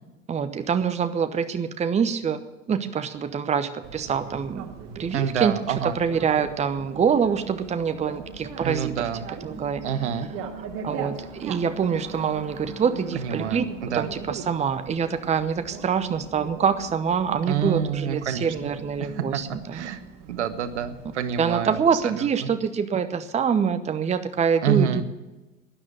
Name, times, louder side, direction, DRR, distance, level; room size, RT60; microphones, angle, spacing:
voice 1, 0.3-2.4 2.7-5.5 5.8-9.0 9.4-9.8 10.8-13.6 13.9-19.9 21.4-25.0, right 7 dB, 20° right, 11 dB, 0.9 m, -25 dB
Bicycle, 3.8-22.0, right 5 dB, 50° right, 1.8 m, -40 dB
voice 2, 5.1-6.0 8.6-9.2 9.8-10.3 13.2-14.1 17.5-18.7 19.0-19.2 19.7-20.0 20.3-22.5 24.6-25.0, right 8 dB, 70° right, 12 dB, 1.1 m, -27 dB
12.0 x 10.0 x 8.8 m, 1.1 s
figure-of-eight pair, 75°, 36 cm